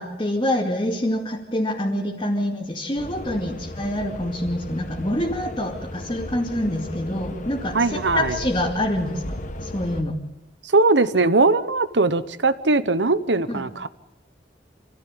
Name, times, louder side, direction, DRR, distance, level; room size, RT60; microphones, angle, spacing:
voice 1, 0.0-9.2 9.6-10.2 13.5-13.6, left 1 dB, 25° left, -3 dB, 2.4 m, -26 dB
sound 1, 3.0-10.0, left 1 dB, 45° left, 1.6 m, -35 dB
voice 2, 7.7-8.4 10.6-13.9, right 3 dB, 75° right, 13 dB, 1.1 m, -20 dB
26.0 x 15.5 x 9.0 m, 0.96 s
head